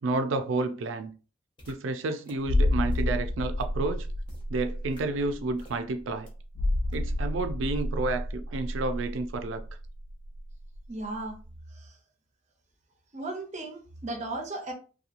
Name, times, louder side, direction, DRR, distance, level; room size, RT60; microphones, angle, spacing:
voice 1, 0.0-1.1 1.7-4.1 4.5-6.3 6.9-9.6, right 3 dB, 80° right, 0.4 m, -30 dB
sound 1, 1.6-1.7 2.2-2.3 2.9-3.0 3.6-3.7 4.3-4.4 4.9-5.0 5.6-5.8 6.3-6.4 6.9-7.0, equal, 25° left, 0.7 m, -48 dB
sound 2, 2.5-10.9 11.1-11.3, left 1 dB, 65° left, 0.3 m, -30 dB
voice 2, 10.9-11.4 11.7-11.9 13.1-14.7, right 2 dB, 40° right, 0.6 m, -36 dB
2.8 x 2.3 x 2.5 m
head